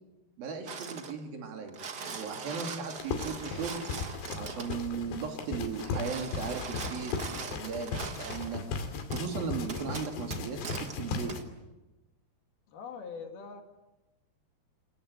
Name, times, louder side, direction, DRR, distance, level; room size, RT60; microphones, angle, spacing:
voice 1, 0.4-3.8 4.4-8.6 9.1-11.3, right 5 dB, 60° right, 3 dB, 4.4 m, -37 dB
sound 1, 0.6-1.2 1.6-4.8 5.7-8.5 9.1-9.2 9.7-10.9 11.3-11.4, right 5 dB, 85° right, 0.9 m, -41 dB
sound 2, 3.0-11.4, left 4 dB, 85° left, 4.6 m, -37 dB
voice 2, 12.7-13.6, left 5 dB, 65° left, 5 dB, 3.9 m, -42 dB
28.0 x 20.5 x 8.3 m, 1.0 s
omnidirectional pair, 4.7 m